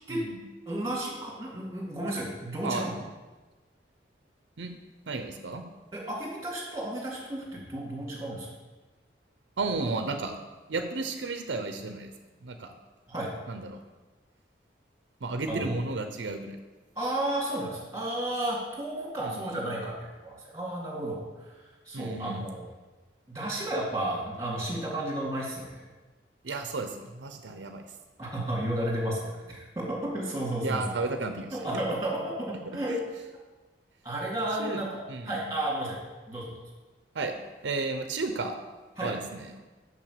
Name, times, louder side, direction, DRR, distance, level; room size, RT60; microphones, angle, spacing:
voice 1, 0.1-0.4 2.6-2.8 4.6-4.8 5.1-5.6 9.6-10.3 10.7-12.1 12.4-12.7 13.5-13.8 15.2-16.6 19.2-19.6 21.9-22.4 26.4-27.8 30.6-31.8 32.9-33.0 34.6-34.8 35.1-35.4 37.1-37.3 37.6-38.5 39.0-39.5, right 3 dB, 85° right, 6 dB, 0.7 m, -33 dB
voice 2, 0.7-2.9 5.9-8.5 13.1-13.3 15.5-15.7 17.0-22.6 23.3-25.8 28.2-30.9 31.5-33.0 34.0-36.0 36.3-36.5 39.0-39.1, right 1 dB, 15° right, -3 dB, 2.3 m, -32 dB
6.4 x 6.0 x 6.6 m, 1.2 s
head